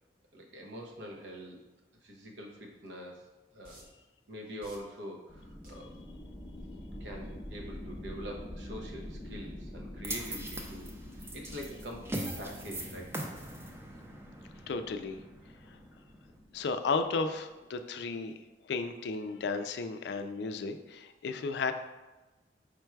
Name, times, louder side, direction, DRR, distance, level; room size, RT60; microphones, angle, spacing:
voice 1, 0.3-1.6 2.0-3.2 3.5-3.9 4.3-5.9 7.0-13.1, equal, 80° right, 0 dB, 0.8 m, -44 dB
sound 1, 2.9-3.0 3.6-4.1 4.6-5.0 5.6-6.0 6.6-6.8, right 1 dB, 50° right, 0.9 m, -54 dB
sound 2, 5.3-17.6, left 1 dB, 10° left, 0.8 m, -46 dB
sound 3, 10.0-16.3, right 1 dB, 15° right, 0.4 m, -41 dB
voice 2, 14.7-15.2 15.7-15.8 16.5-18.3 18.6-21.7, left 4 dB, 65° left, 8 dB, 0.3 m, -34 dB
5.1 x 2.2 x 4.5 m, 1.1 s
head